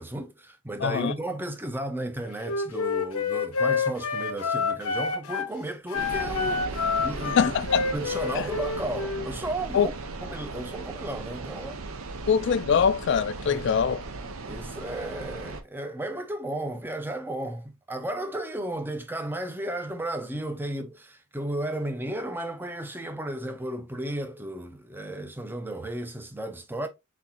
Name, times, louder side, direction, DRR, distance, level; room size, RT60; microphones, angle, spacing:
voice 1, 0.0-7.5 7.9-9.9 10.2-11.8 12.8-12.9 13.5-13.7 14.4-26.9, right 1 dB, 10° right, 0.5 m, -34 dB
voice 2, 0.8-1.1 7.4-7.9 8.4-8.5 9.7-9.9 12.3-14.0, left 7 dB, 55° left, 0.3 m, -23 dB
Wind instrument woodwind instrument, 2.4-5.5 5.9-9.3, left 4 dB, 80° left, 0.8 m, -28 dB
sound 1, 5.9-15.6, right 3 dB, 70° right, 0.7 m, -37 dB
4.2 x 3.5 x 2.7 m
head